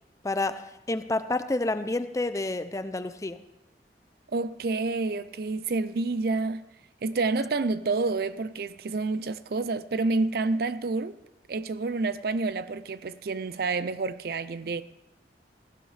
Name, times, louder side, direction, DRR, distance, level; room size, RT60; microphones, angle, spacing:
voice 1, 0.2-3.4, left 2 dB, 20° left, 0.5 m, -29 dB
voice 2, 4.3-6.7 7.0-11.2 11.5-14.8, right 3 dB, 60° right, 0.5 m, -28 dB
17.5 x 15.5 x 3.3 m
head